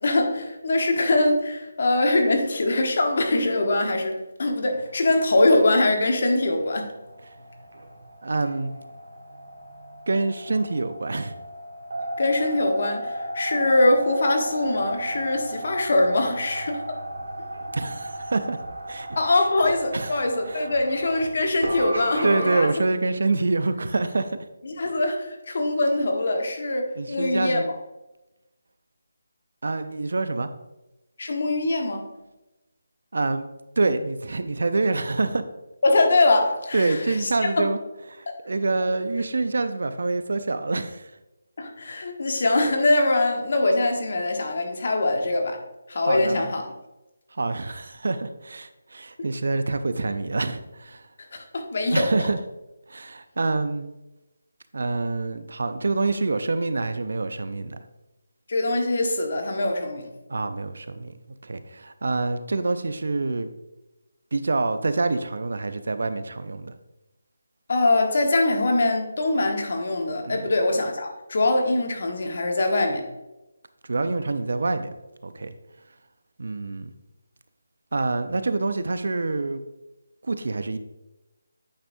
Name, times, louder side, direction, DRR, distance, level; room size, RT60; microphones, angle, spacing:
voice 1, 0.0-6.9 12.2-17.0 19.2-22.7 24.6-27.6 31.2-32.1 35.8-37.6 38.3-38.4 41.6-45.6 45.9-46.6 49.2-49.3 51.3-52.1 58.5-60.1 67.7-73.1, left 2 dB, 55° left, 3 dB, 1.3 m, -23 dB
sound 1, 4.6-22.6, right 1 dB, 85° right, 1.4 m, -35 dB
voice 2, 8.2-8.7 10.1-11.3 17.7-18.6 18.9-19.4 19.9-20.1 20.5-20.7 22.2-24.4 27.0-27.6 29.6-30.5 33.1-33.5 33.8-35.4 36.7-37.8 38.1-41.1 46.1-46.5 47.3-51.1 51.9-52.4 52.9-53.9 54.7-57.8 60.3-61.1 61.4-63.5 64.3-66.8 70.3-70.5 73.8-74.9 75.2-75.5 76.4-76.9 77.9-79.6 80.2-80.8, right 3 dB, 70° right, 11 dB, 0.5 m, -26 dB
8.7 x 5.4 x 2.7 m, 0.99 s
figure-of-eight pair, 160°, 0 cm